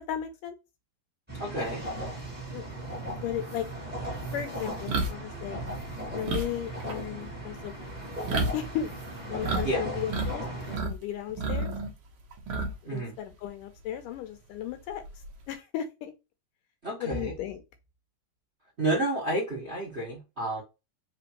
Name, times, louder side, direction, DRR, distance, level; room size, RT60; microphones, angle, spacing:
voice 1, 0.1-0.6 2.5-3.7 4.3-5.6 6.1-8.1 8.5-8.9 9.2-11.7 12.8-15.0 15.5-16.1 17.0-17.6, left 10 dB, 80° left, 2.1 m, -35 dB
sound 1, 1.3-10.8, right 1 dB, 5° right, 0.9 m, -37 dB
voice 2, 1.4-1.8 9.6-9.8 12.8-13.2 16.8-17.3 18.8-20.6, right 1 dB, 40° right, 0.9 m, -30 dB
sound 2, 2.9-3.0 3.5-9.7 9.9-10.9 11.3-13.0 13.3-13.5 14.9-15.4, right 2 dB, 85° right, 1.2 m, -32 dB
5.1 x 3.1 x 2.9 m
omnidirectional pair, 4.1 m